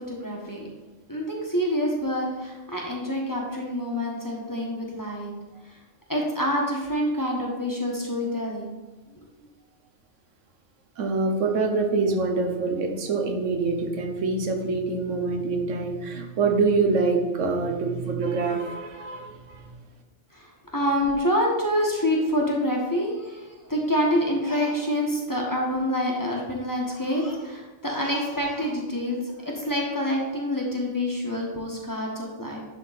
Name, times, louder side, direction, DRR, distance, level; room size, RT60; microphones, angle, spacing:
voice 1, 0.1-0.7 1.1-5.3 6.1-8.7 20.3-32.6, equal, 15° left, -2 dB, 1.2 m, -27 dB
voice 2, 11.0-19.7, right 4 dB, 85° right, 3 dB, 1.3 m, -25 dB
10.5 x 3.8 x 4.1 m, 1.2 s
omnidirectional pair, 1.2 m